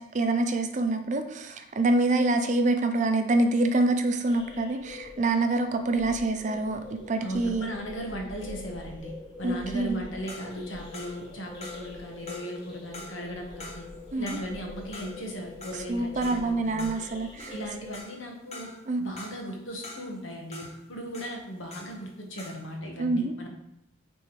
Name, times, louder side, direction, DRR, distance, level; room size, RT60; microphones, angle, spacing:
voice 1, 0.1-6.8 7.1-7.7 9.4-10.0 14.1-14.2 15.9-17.5 18.9-19.0 23.0-23.3, right 2 dB, 40° right, 7 dB, 0.4 m, -26 dB
sound 1, 4.3-18.0, left 2 dB, 60° left, 1.5 m, -45 dB
voice 2, 7.2-9.1 9.4-13.8 14.2-16.9 17.5-18.7 19.0-23.5, equal, 80° left, 1 dB, 1.3 m, -37 dB
sound 2, 10.2-22.1 22.4-22.7, left 2 dB, 35° left, 1.0 m, -46 dB
9.1 x 3.5 x 3.2 m, 0.80 s
head